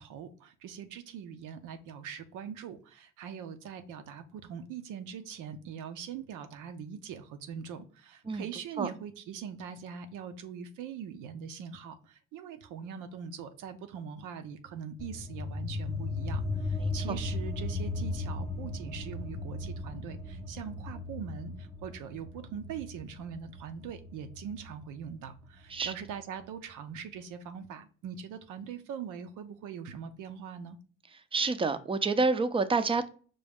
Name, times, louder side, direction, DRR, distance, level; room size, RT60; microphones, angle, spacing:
voice 1, 0.0-30.8, right 7 dB, 90° right, 0.6 m, -42 dB
sound 1, 15.0-26.1, left 2 dB, 20° left, 0.6 m, -37 dB
voice 2, 16.8-17.2 25.7-25.9 31.3-33.1, right 4 dB, 20° right, 0.4 m, -28 dB
5.2 x 2.3 x 3.4 m
cardioid pair, 90°, 30 cm